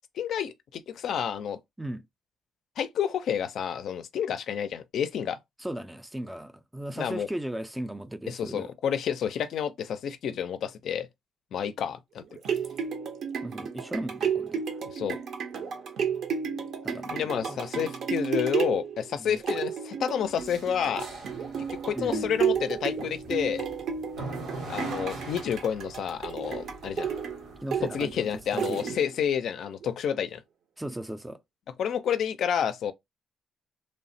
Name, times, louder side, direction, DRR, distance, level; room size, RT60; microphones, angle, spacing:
voice 1, 0.2-1.6 2.8-5.4 6.9-7.3 8.3-11.1 11.5-12.2 14.9-15.2 17.1-21.1 21.7-23.7 24.7-27.1 27.9-30.4 31.8-32.9, left 8 dB, 70° left, 0.4 m, -30 dB
voice 2, 5.6-8.7 13.4-14.7 16.8-17.6 19.2-19.4 21.9-22.3 27.6-29.0 30.8-31.4, right 1 dB, 10° right, 0.3 m, -37 dB
sound 1, 12.2-29.3 29.8-29.9, right 7 dB, 65° right, 0.6 m, -32 dB
sound 2, 20.2-28.5, right 2 dB, 85° right, 1.3 m, -43 dB
3.1 x 2.0 x 2.6 m
cardioid pair, 90°, 0 cm